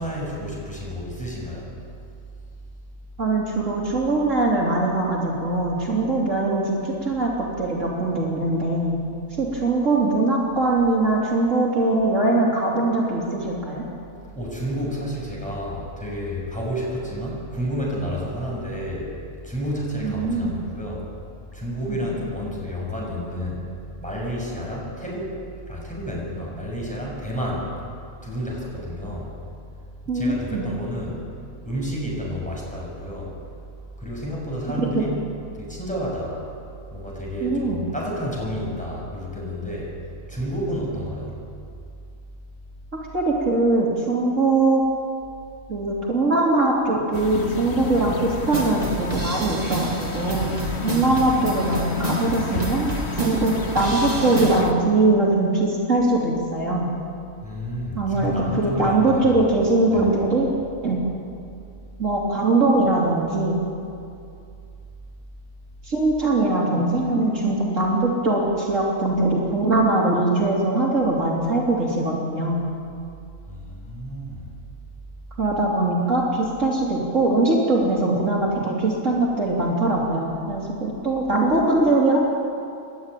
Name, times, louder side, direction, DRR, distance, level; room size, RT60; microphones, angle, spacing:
voice 1, 0.0-1.7 14.3-19.2 19.4-21.1 21.5-23.6 24.0-27.7 28.2-29.4 30.1-31.3 31.6-33.3 34.0-35.1 35.5-36.4 36.9-40.0 40.3-41.3 57.4-59.4 59.9-60.0 73.5-74.5, equal, 5° left, -4 dB, 6.9 m, -30 dB
voice 2, 3.2-9.0 9.4-13.9 20.0-20.6 21.9-22.0 30.1-30.7 34.8-34.9 37.4-37.8 43.1-44.8 45.7-56.9 58.0-60.5 60.8-61.0 62.0-63.6 65.9-72.6 75.4-82.2, right 2 dB, 60° right, -4 dB, 3.6 m, -21 dB
sound 1, 47.1-54.7, left 3 dB, 50° left, 1.7 m, -30 dB
sound 2, 48.5-54.6, right 2 dB, 30° right, 2.2 m, -31 dB
28.5 x 12.5 x 9.2 m, 2.5 s
omnidirectional pair, 1.4 m